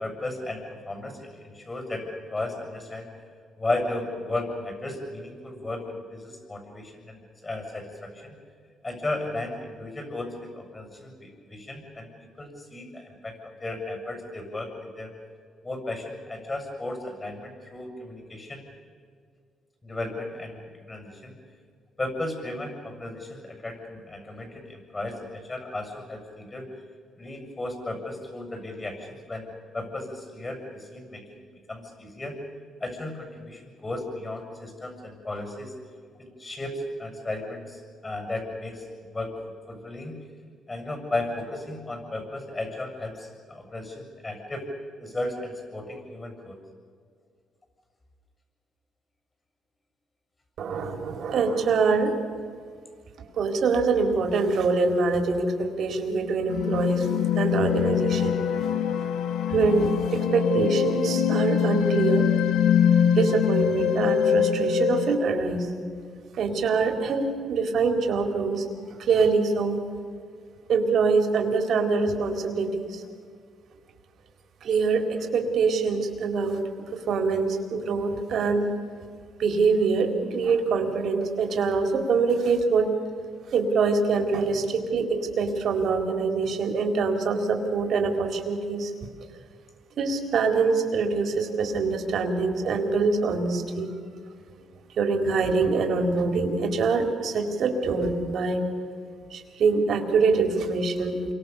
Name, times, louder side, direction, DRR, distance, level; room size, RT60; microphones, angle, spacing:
voice 1, 0.0-3.1 3.6-8.4 8.8-15.1 15.6-18.6 19.8-21.4 22.0-26.7 27.2-31.4 31.7-32.4 32.8-35.7 36.2-39.4 39.7-40.2 40.7-44.7 45.0-46.6, left 2 dB, 25° left, 4 dB, 7.3 m, -35 dB
voice 2, 50.6-52.1 53.4-57.1 57.4-58.4 59.5-62.3 63.2-65.7 66.3-69.8 70.7-73.0 74.6-76.6 76.9-78.7 79.4-82.9 83.5-88.9 90.0-93.9 95.0-98.7 99.3-101.3, right 4 dB, 65° right, 5 dB, 4.1 m, -24 dB
sound 1, 56.5-65.2, left 8 dB, 80° left, 1.8 m, -23 dB
28.5 x 24.5 x 7.1 m, 2.1 s
cardioid pair, 90°, 0 cm